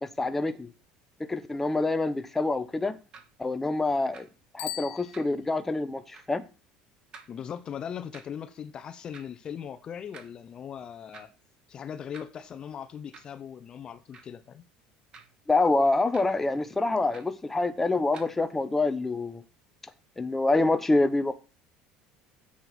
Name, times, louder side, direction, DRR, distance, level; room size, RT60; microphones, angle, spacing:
voice 1, 0.0-0.7 1.3-3.0 3.4-4.3 4.5-6.4 15.5-19.4 20.2-21.3, left 2 dB, 10° left, 1.0 m, -26 dB
sound 1, 3.1-3.3 4.1-4.2 5.1-5.4 6.1-6.3 7.1-7.3 8.1-8.2 9.1-9.2 10.1-10.3 11.1-11.3 12.1-12.2 13.1-13.4 14.1-14.3 15.1-15.4 16.1-16.2 17.1-17.4 18.1-18.3, right 5 dB, 35° right, 2.3 m, -49 dB
Bicycle bell, 4.5-5.9, left 13 dB, 65° left, 1.6 m, -40 dB
voice 2, 7.3-11.3 11.7-14.7, left 8 dB, 35° left, 0.9 m, -39 dB
10.0 x 8.0 x 6.0 m
cardioid pair, 125°, 2 cm